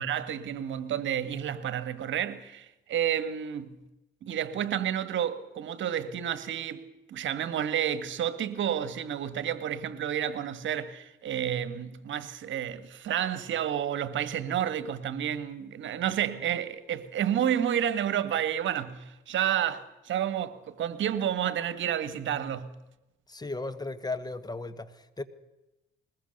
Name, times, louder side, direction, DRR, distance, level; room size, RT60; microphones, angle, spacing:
voice 1, 0.0-3.8 4.2-6.8 7.1-22.8, right 10 dB, 70° right, 1.6 m, -30 dB
voice 2, 23.3-25.2, left 3 dB, 20° left, 1.6 m, -36 dB
21.0 x 20.5 x 6.7 m
cardioid pair, 90°, 20 cm